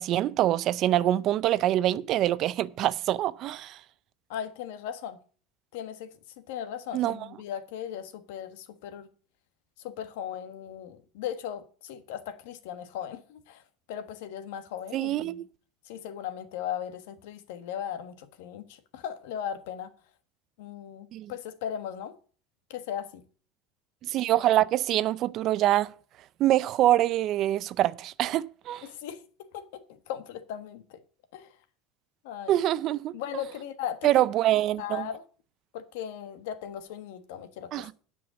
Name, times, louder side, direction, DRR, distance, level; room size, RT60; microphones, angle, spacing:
voice 1, 0.0-3.8 6.9-7.3 14.9-15.4 21.1-21.3 24.0-25.9 26.4-28.9 32.5-33.1 34.0-35.1 37.7-37.9, right 13 dB, 45° right, 0.5 m, -25 dB
voice 2, 4.3-5.2 5.7-6.1 6.5-9.1 9.8-13.6 13.9-15.4 15.9-18.7 18.9-19.9 20.6-22.2 22.7-23.2 28.8-29.2 29.5-31.0 31.3-31.5 32.2-32.5 33.1-34.2 34.8-35.2 35.7-37.9, left 9 dB, 80° left, 1.3 m, -37 dB
9.5 x 5.3 x 8.1 m
supercardioid pair, 140°, 0 cm